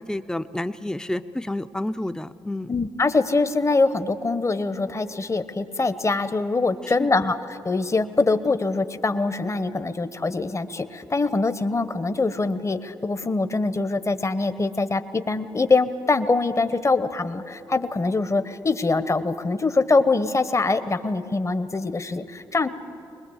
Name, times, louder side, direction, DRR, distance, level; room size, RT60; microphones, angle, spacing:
voice 1, 0.0-2.7 7.0-7.3, left 1 dB, 5° left, 10 dB, 0.7 m, -30 dB
voice 2, 2.7-22.7, left 3 dB, 30° left, 12 dB, 1.0 m, -23 dB
22.0 x 20.5 x 8.0 m, 2.8 s
hypercardioid pair, 45°, 10 cm